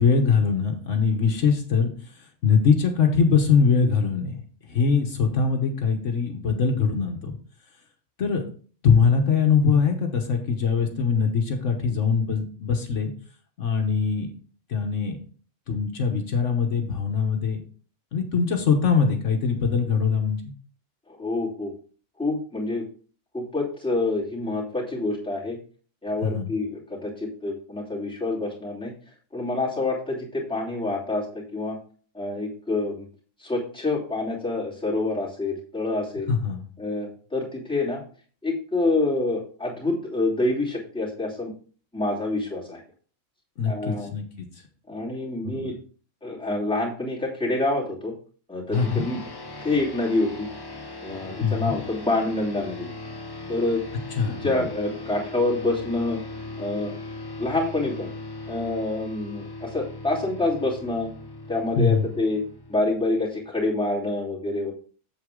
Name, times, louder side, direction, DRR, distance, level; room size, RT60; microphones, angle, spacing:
voice 1, 0.0-1.9 2.4-4.3 4.7-7.3 8.2-8.4 8.8-13.1 13.6-14.3 14.7-15.2 15.7-17.6 18.1-20.4 26.2-26.5 36.3-36.6 43.6-44.5 45.4-45.7 48.7-49.1 51.4-51.7 54.2-54.5 61.8-62.0, left 5 dB, 70° left, 3 dB, 1.4 m, -22 dB
voice 2, 21.1-21.7 22.2-22.8 23.3-25.6 26.0-28.9 29.3-31.2 31.5-31.8 32.1-33.1 33.4-36.3 36.8-38.0 38.4-41.5 41.9-42.8 43.6-44.1 44.9-45.7 46.2-48.1 48.5-49.2 49.6-50.5 51.0-52.9 53.5-53.8 54.4-56.2 56.6-56.9 57.4-58.1 58.5-61.1 61.5-62.4 62.7-64.7, left 2 dB, 5° left, -6 dB, 2.7 m, -27 dB
sound 1, 48.7-63.5, left 2 dB, 25° left, 0.6 m, -39 dB
8.0 x 7.2 x 3.6 m, 0.43 s
omnidirectional pair, 1.3 m